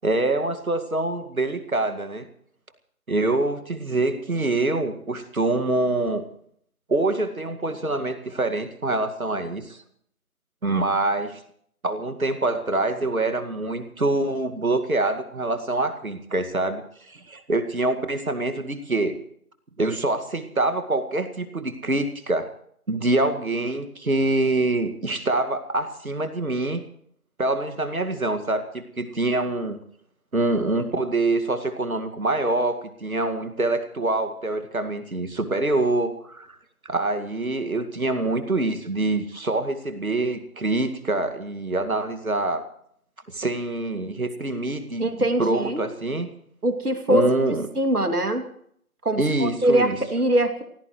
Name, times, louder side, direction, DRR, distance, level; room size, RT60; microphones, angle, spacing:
voice 1, 0.0-2.2 3.1-6.3 6.9-9.8 10.6-11.4 11.8-16.8 17.1-19.2 19.8-22.5 22.9-26.8 27.4-29.8 30.3-36.5 36.8-42.7 43.3-45.1 45.4-46.3 47.1-47.7 49.2-50.0, right 2 dB, 70° right, 8 dB, 2.2 m, -25 dB
voice 2, 45.0-45.9 46.6-47.3 47.7-48.4 49.0-50.6, right 1 dB, 90° right, 6 dB, 2.8 m, -22 dB
26.5 x 17.0 x 3.2 m, 0.64 s
figure-of-eight pair, 175°, 44 cm